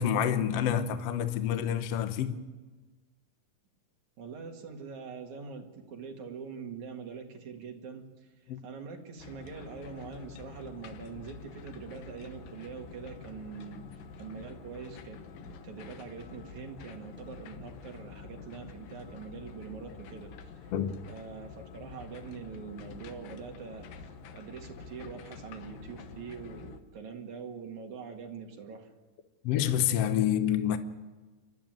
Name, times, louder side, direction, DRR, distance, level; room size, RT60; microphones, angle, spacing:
voice 1, 0.0-2.4 8.5-8.6 20.7-20.9 29.4-30.8, left 9 dB, 65° left, 1.5 m, -28 dB
voice 2, 4.2-13.8 14.2-20.5 21.1-28.9, right 6 dB, 60° right, 3.4 m, -44 dB
sound 1, 9.2-26.8, left 6 dB, 85° left, 2.8 m, -48 dB
29.0 x 12.0 x 9.1 m
omnidirectional pair, 3.9 m